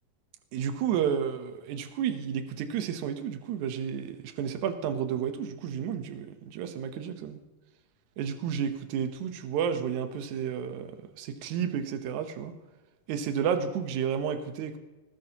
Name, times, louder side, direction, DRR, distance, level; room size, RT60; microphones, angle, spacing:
voice 1, 0.5-7.4 8.2-10.9 11.2-12.5 13.1-14.8, right 8 dB, 70° right, 8 dB, 1.9 m, -31 dB
19.5 x 10.5 x 2.9 m, 1.2 s
omnidirectional pair, 4.4 m